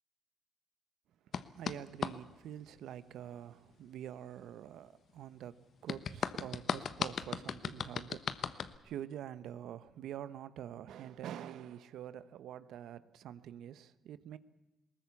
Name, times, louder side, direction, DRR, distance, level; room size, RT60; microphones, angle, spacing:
sound 1, 1.3-2.1 5.9-8.8, left 7 dB, 55° left, 1.1 m, -37 dB
voice 1, 1.5-14.4, right 10 dB, 80° right, 0.9 m, -46 dB
21.0 x 18.5 x 8.4 m
cardioid pair, 90°, 0 cm